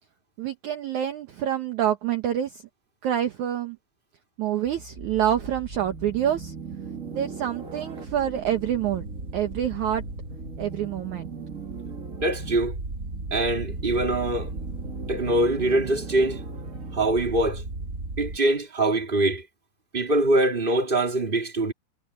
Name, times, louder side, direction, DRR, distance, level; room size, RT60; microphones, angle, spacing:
voice 1, 0.4-2.6 3.0-3.8 4.4-6.5 7.1-9.1 9.3-10.0 10.6-11.3, right 10 dB, 70° right, 1.8 m, -27 dB
sound 1, 4.6-18.4, right 3 dB, 50° right, 0.9 m, -36 dB
voice 2, 12.2-12.8 13.3-14.5 15.1-16.4 16.9-17.6 18.2-19.4 19.9-21.7, right 2 dB, 15° right, 3.1 m, -23 dB
omnidirectional pair, 5.1 m